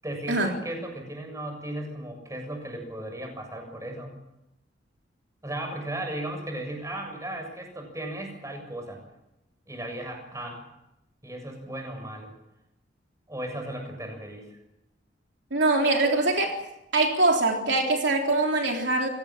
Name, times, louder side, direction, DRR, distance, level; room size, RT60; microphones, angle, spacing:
voice 1, 0.0-4.1 5.4-9.0 9.7-10.6 11.2-12.3 13.3-14.6, right 1 dB, 20° right, 4 dB, 7.1 m, -36 dB
voice 2, 15.5-16.6 16.9-19.1, right 2 dB, 70° right, 2 dB, 3.6 m, -23 dB
27.0 x 18.0 x 7.5 m, 0.88 s
head